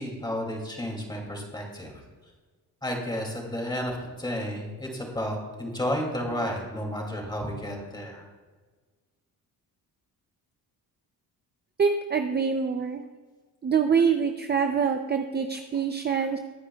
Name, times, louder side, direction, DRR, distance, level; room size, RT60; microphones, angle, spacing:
voice 1, 0.0-1.9 2.8-8.2, equal, 10° left, 0 dB, 2.5 m, -32 dB
voice 2, 11.8-13.0 13.6-16.4, right 6 dB, 25° right, 6 dB, 0.5 m, -25 dB
21.5 x 9.7 x 2.3 m, 1.4 s
cardioid pair, 160°, 37 cm